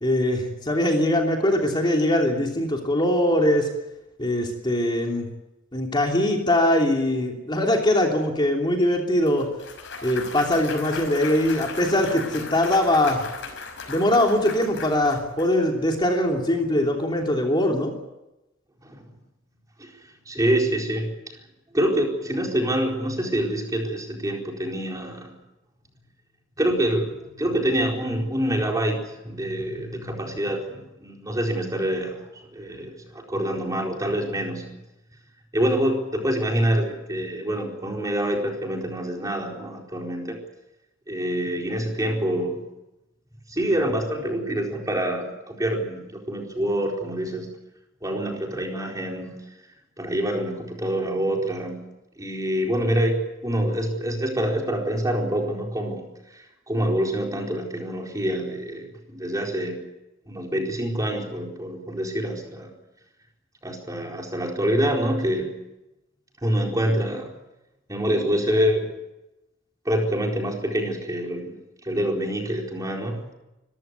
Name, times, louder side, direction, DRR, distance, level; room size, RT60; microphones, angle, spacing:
voice 1, 0.0-3.7 4.2-5.3 5.7-9.5 10.0-13.2 13.9-17.9, left 1 dB, 25° left, 1 dB, 3.1 m, -22 dB
Clapping / Cheering / Applause, 9.3-15.5, left 4 dB, 65° left, 5.7 m, -37 dB
voice 2, 19.8-21.3 21.7-25.3 26.6-34.7 35.5-40.4 41.1-42.6 43.5-47.5 48.0-49.4 50.0-51.8 52.2-59.8 60.3-62.7 63.6-65.6 66.4-67.3 67.9-68.9 69.8-73.2, right 1 dB, 15° right, 1 dB, 4.4 m, -26 dB
25.5 x 15.0 x 9.5 m, 0.95 s
head